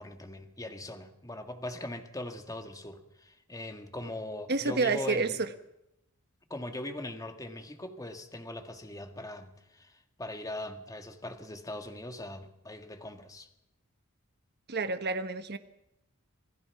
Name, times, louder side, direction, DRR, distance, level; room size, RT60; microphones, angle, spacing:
voice 1, 0.0-5.4 6.5-13.5, left 1 dB, 15° left, 6 dB, 1.8 m, -40 dB
voice 2, 4.5-5.5 14.7-15.6, right 3 dB, 50° right, 9 dB, 1.3 m, -29 dB
27.0 x 17.5 x 5.9 m, 0.85 s
head